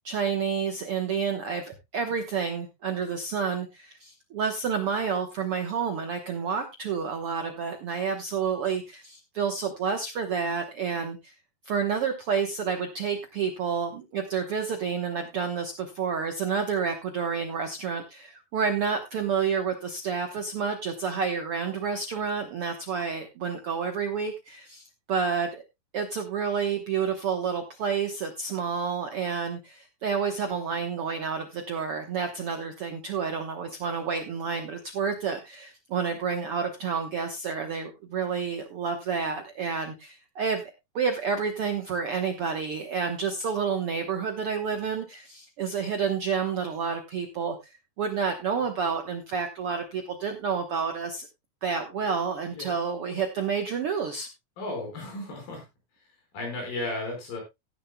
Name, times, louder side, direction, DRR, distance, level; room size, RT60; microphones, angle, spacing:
voice 1, 0.0-11.3 11.6-25.6 25.9-51.3 51.6-54.3, right 6 dB, 65° right, 5 dB, 1.4 m, -29 dB
voice 2, 54.6-55.6 56.3-57.4, left 2 dB, 75° left, 2 dB, 6.6 m, -34 dB
16.0 x 10.5 x 2.2 m, 0.22 s
omnidirectional pair, 4.1 m